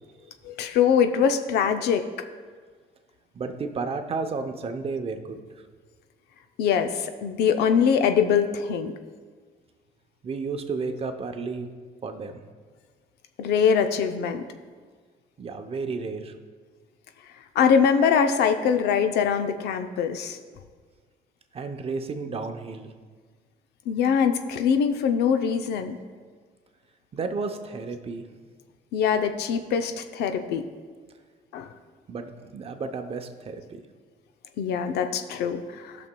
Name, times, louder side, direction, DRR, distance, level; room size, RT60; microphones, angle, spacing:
voice 1, 0.4-2.0 6.6-8.9 13.4-14.5 17.6-20.4 23.9-26.0 28.9-30.6 31.5-31.7 34.6-36.0, left 7 dB, 75° left, 8 dB, 0.6 m, -23 dB
voice 2, 3.3-5.4 10.2-11.7 12.0-12.4 15.4-16.3 21.5-22.9 27.1-28.3 32.1-33.8, right 4 dB, 35° right, 7 dB, 0.7 m, -32 dB
16.5 x 6.0 x 2.2 m, 1.5 s
cardioid pair, 110°, 17 cm